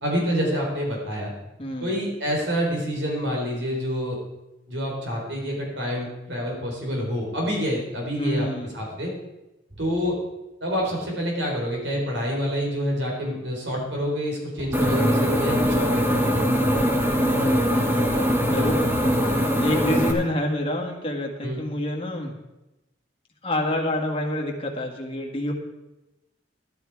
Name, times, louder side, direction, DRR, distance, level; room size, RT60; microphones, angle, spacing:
voice 1, 0.0-1.3 1.8-4.2 4.7-8.5 8.7-9.1 9.8-10.2 10.6-16.3 21.4-21.6, equal, 75° right, -1 dB, 3.9 m, -27 dB
voice 2, 1.6-1.9 8.2-8.9 17.2-18.8 19.6-22.3 23.4-25.5, left 1 dB, 30° left, 0 dB, 1.8 m, -28 dB
sound 1, 14.6-14.7 15.6-15.8 16.7-17.2 17.5-17.6 18.0-18.2 18.6-18.8, equal, 35° right, 5.0 m, -38 dB
sound 2, 14.7-20.1, equal, 15° right, 1.4 m, -22 dB
12.5 x 10.5 x 4.8 m, 0.97 s
head